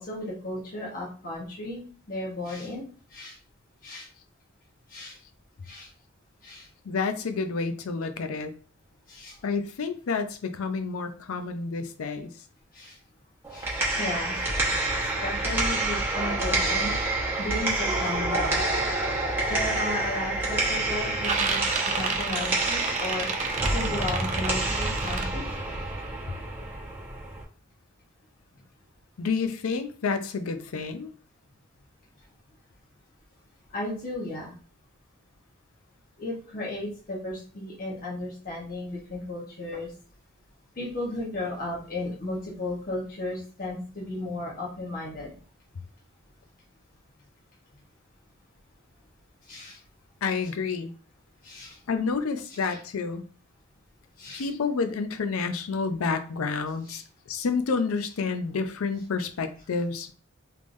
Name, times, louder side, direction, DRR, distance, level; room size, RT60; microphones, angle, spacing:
voice 1, 0.0-1.8 2.1-2.8 3.1-3.4 3.8-4.1 4.9-5.2 5.6-5.9 6.4-6.7 9.1-9.4 12.7-13.0 13.5-14.5 14.9-18.6 19.5-21.6 21.8-25.5 33.7-34.5 36.2-39.9 40.8-45.4 49.4-49.8 51.4-51.8 52.5-52.8 54.2-54.5 56.9-57.0, left 1 dB, 40° left, -4 dB, 1.1 m, -35 dB
voice 2, 6.9-8.5 9.4-12.3 29.2-31.1 50.2-50.9 51.9-53.2 54.3-57.0 57.3-60.1, left 4 dB, 75° left, 9 dB, 0.5 m, -29 dB
sound 1, 13.4-27.4, right 2 dB, 10° right, 1.2 m, -28 dB
sound 2, 19.5-19.8 20.2-20.7 21.0-25.2, right 4 dB, 35° right, 0.4 m, -31 dB
3.5 x 3.2 x 2.6 m, 0.41 s
head